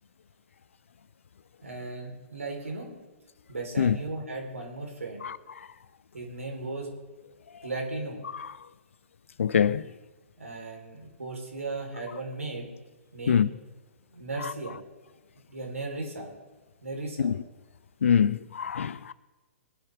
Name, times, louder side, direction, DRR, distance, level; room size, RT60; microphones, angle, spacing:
voice 1, 1.6-3.0 3.5-5.3 6.1-6.9 7.6-8.2 10.4-12.7 13.1-13.5 14.1-14.8 15.5-16.3 16.8-17.3, right 2 dB, 85° right, 4.3 m, -36 dB
voice 2, 5.2-5.7 8.3-8.5 9.4-9.9 13.3-13.5 17.2-17.4 18.0-19.1, left 7 dB, 70° left, 0.7 m, -25 dB
21.5 x 11.0 x 3.7 m
figure-of-eight pair, 120°, 7 cm